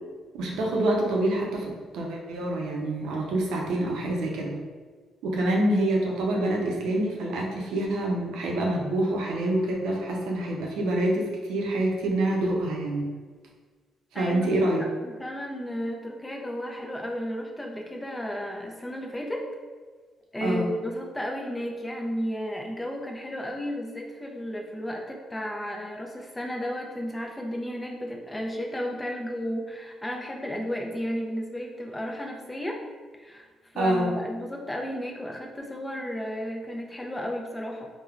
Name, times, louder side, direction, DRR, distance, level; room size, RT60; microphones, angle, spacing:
voice 1, 0.3-4.6 5.2-13.1 14.1-14.9 20.4-20.6 33.8-34.1, right 1 dB, 85° right, -1 dB, 0.5 m, -26 dB
voice 2, 14.1-19.4 20.3-32.8 33.2-33.5 33.7-37.9, equal, 15° left, 0 dB, 0.4 m, -33 dB
3.4 x 2.1 x 2.3 m, 1.5 s
cardioid pair, 90°, 0 cm